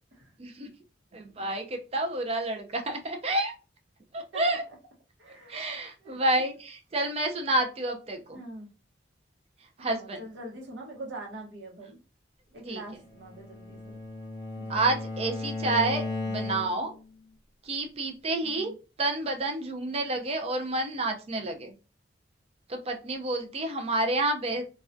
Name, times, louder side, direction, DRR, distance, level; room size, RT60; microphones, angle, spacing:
voice 1, 0.4-0.7 1.1-3.5 4.1-4.6 5.5-8.4 9.8-10.2 12.7-12.8 14.7-17.0 17.6-18.7 19.0-21.7 22.7-24.6, right 2 dB, 35° right, 5 dB, 0.4 m, -29 dB
voice 2, 5.2-5.7 6.0-6.2 8.3-8.7 9.8-12.0 12.5-14.0 14.6-14.8 18.4-18.7, right 1 dB, 85° right, -1 dB, 0.9 m, -43 dB
Bowed string instrument, 13.0-17.0, left 2 dB, 25° left, 0.6 m, -35 dB
2.3 x 2.1 x 2.5 m, 0.32 s
head